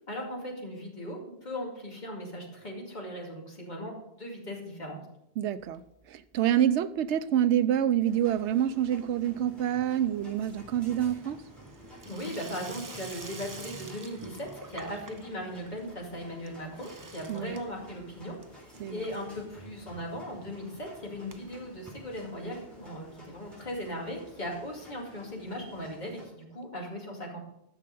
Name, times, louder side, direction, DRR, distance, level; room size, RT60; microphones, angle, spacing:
voice 1, 0.1-5.0 12.0-27.4, equal, 40° left, -1 dB, 2.4 m, -38 dB
voice 2, 5.4-11.4 17.3-17.6 18.8-19.1, right 10 dB, 85° right, 13 dB, 0.9 m, -27 dB
Water tap faucet / Sink (filling or washing), 5.6-6.4 6.6-7.2 7.5-22.8 23.1-23.2 23.4-23.5 23.7-23.8 24.8-24.9, right 3 dB, 25° right, 0.5 m, -49 dB
sound 1, 8.0-26.2, left 1 dB, ahead, 4.0 m, -53 dB
10.5 x 6.5 x 5.4 m, 0.80 s
omnidirectional pair, 1.1 m